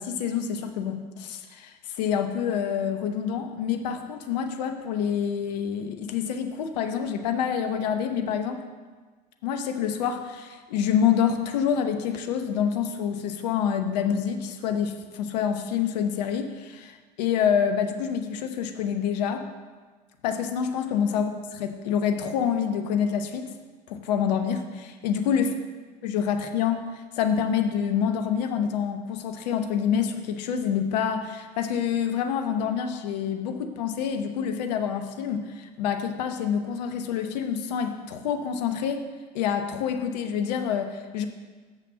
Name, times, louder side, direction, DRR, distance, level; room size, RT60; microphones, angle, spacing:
voice 1, 0.0-8.6 9.4-19.4 20.2-23.5 23.9-25.5 26.0-39.0 39.3-41.3, left 8 dB, 75° left, 7 dB, 0.9 m, -27 dB
7.1 x 5.7 x 7.2 m, 1.4 s
hypercardioid pair, 70°, 21 cm